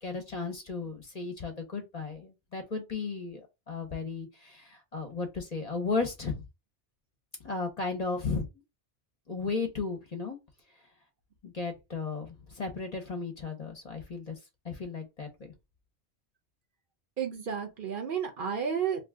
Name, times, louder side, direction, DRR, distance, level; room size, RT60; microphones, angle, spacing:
voice 1, 0.0-6.4 7.4-8.4 9.3-10.4 11.4-14.4 14.6-15.3, left 4 dB, 40° left, 0.8 m, -35 dB
voice 2, 17.2-19.1, right 7 dB, 55° right, 0.8 m, -32 dB
2.7 x 2.3 x 3.4 m
omnidirectional pair, 1.1 m